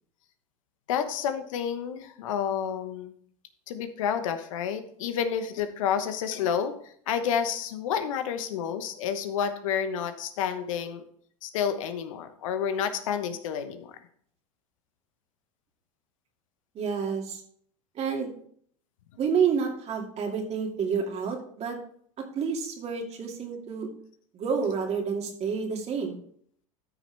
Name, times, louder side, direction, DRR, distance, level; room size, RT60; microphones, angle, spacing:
voice 1, 0.9-3.1 3.7-11.0 11.4-14.0, left 8 dB, 70° left, 9 dB, 1.1 m, -30 dB
voice 2, 16.7-17.4 17.9-18.3 19.2-21.8 22.3-23.9 24.3-26.1, right 6 dB, 40° right, 2 dB, 2.4 m, -29 dB
13.0 x 6.2 x 3.4 m, 0.63 s
hypercardioid pair, 90°, 17 cm